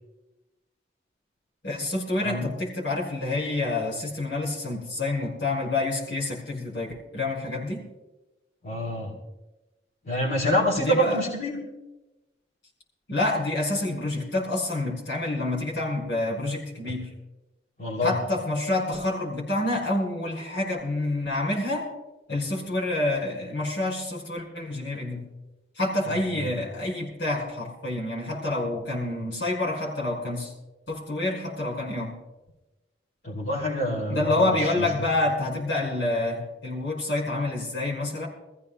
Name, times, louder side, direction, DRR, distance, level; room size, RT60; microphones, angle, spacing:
voice 1, 1.6-7.8 10.8-11.2 13.1-17.1 18.0-21.8 22.3-25.3 25.8-30.5 30.9-32.1 34.1-38.3, left 2 dB, 85° left, -3 dB, 5.0 m, -28 dB
voice 2, 8.6-9.1 10.0-11.6 17.8-18.1 26.1-26.2 33.2-34.8, equal, 55° left, -6 dB, 2.8 m, -26 dB
25.5 x 15.0 x 2.2 m, 1.0 s
head